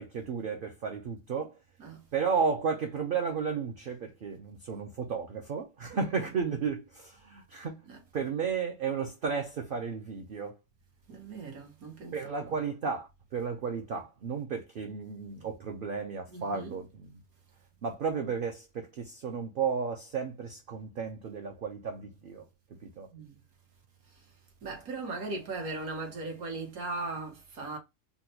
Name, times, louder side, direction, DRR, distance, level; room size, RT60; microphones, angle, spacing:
voice 1, 0.0-1.6 2.1-7.8 8.1-10.6 12.1-17.1 17.8-22.4 22.8-23.1, right 5 dB, 60° right, 0.5 m, -33 dB
voice 2, 11.1-12.2 12.5-12.6 16.3-16.8 23.1-23.4 24.1-24.3 24.6-27.8, right 3 dB, 85° right, 1.6 m, -38 dB
3.8 x 2.2 x 2.7 m
omnidirectional pair, 1.5 m